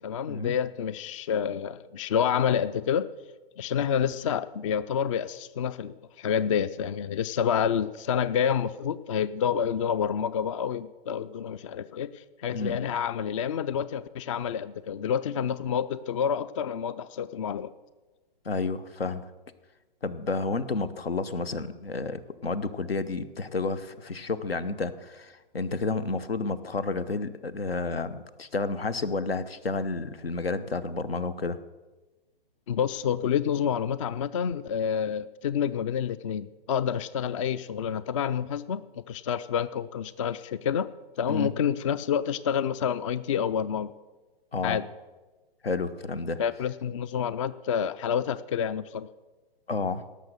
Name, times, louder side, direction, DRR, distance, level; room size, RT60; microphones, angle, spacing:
voice 1, 0.0-3.1 3.6-17.7 32.7-40.9 41.2-43.9 44.6-44.8 46.4-49.1, left 8 dB, 35° left, 17 dB, 0.4 m, -28 dB
voice 2, 18.4-19.3 20.0-31.6 41.3-41.5 44.5-44.8 45.6-46.4 49.7-50.1, left 3 dB, 80° left, 14 dB, 1.0 m, -31 dB
17.5 x 6.5 x 6.6 m, 1.2 s
figure-of-eight pair, 125°, 29 cm